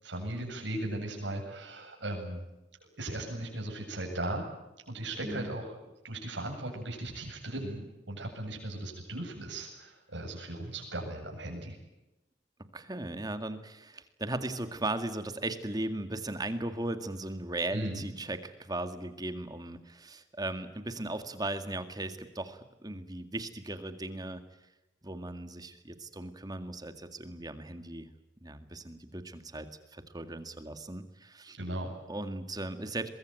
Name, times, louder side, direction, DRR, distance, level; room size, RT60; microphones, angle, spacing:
voice 1, 0.0-2.5 3.0-4.5 4.9-5.7 6.0-11.8 17.7-18.0 31.6-31.9, right 1 dB, 65° right, 0 dB, 7.9 m, -37 dB
voice 2, 12.7-24.4 25.0-28.1 28.4-31.6 32.1-33.1, right 2 dB, 20° right, 9 dB, 2.0 m, -37 dB
24.0 x 21.5 x 9.3 m, 0.98 s
head